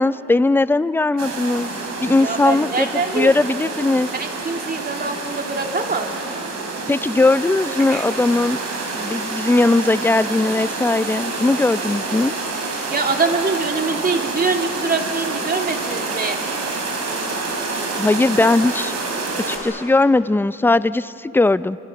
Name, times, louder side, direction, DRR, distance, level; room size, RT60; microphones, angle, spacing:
voice 1, 0.0-1.7 2.0-2.9 3.1-4.1 6.9-8.6 8.9-12.3 18.0-18.9 19.5-21.8, left 2 dB, 5° left, 15 dB, 0.5 m, -18 dB
sound 1, 1.2-19.6, right 3 dB, 55° right, 5.1 m, -28 dB
voice 2, 2.2-3.3 4.1-6.1 7.9-8.0 12.9-16.4, right 4 dB, 30° right, 3 dB, 2.8 m, -23 dB
30.0 x 26.5 x 6.0 m, 2.9 s
cardioid pair, 90°, 30 cm